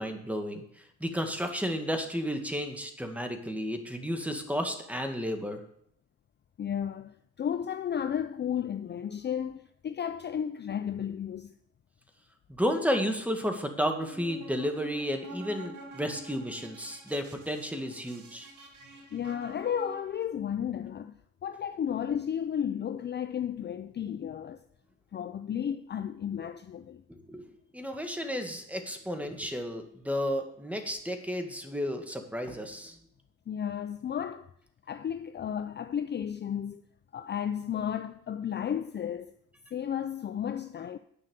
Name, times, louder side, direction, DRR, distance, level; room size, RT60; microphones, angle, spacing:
voice 1, 0.0-5.6 12.5-18.5 27.1-33.0, equal, 5° right, 1.8 m, -32 dB
voice 2, 6.6-11.5 19.1-21.1 21.4-24.6 25.1-27.0 33.5-34.5 34.9-36.8 37.1-39.4 39.7-41.0, left 8 dB, 35° left, 0.5 m, -33 dB
sound 1, 14.1-20.2, right 2 dB, 75° right, 2.4 m, -48 dB
10.0 x 5.7 x 7.8 m
cardioid pair, 90°, 30 cm